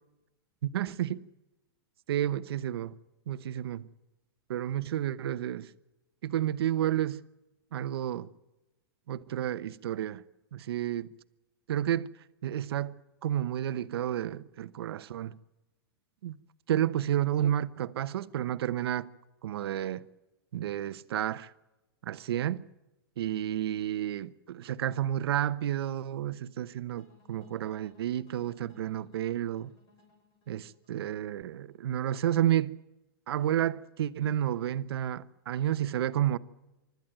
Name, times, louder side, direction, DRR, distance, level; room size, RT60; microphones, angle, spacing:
voice 1, 0.6-1.3 2.1-3.0 3.3-3.9 4.5-5.7 6.2-7.2 7.7-8.3 9.1-10.2 10.5-11.1 11.7-12.1 12.4-15.4 16.2-16.4 16.7-19.1 19.4-20.0 20.5-21.5 22.0-22.6 23.2-29.7 30.5-32.8 33.3-36.4, right 11 dB, 80° right, 1.0 m, -31 dB
sound 1, 27.0-32.1, left 3 dB, 35° left, 7.0 m, -63 dB
24.5 x 13.0 x 9.1 m
supercardioid pair, 140°, 13 cm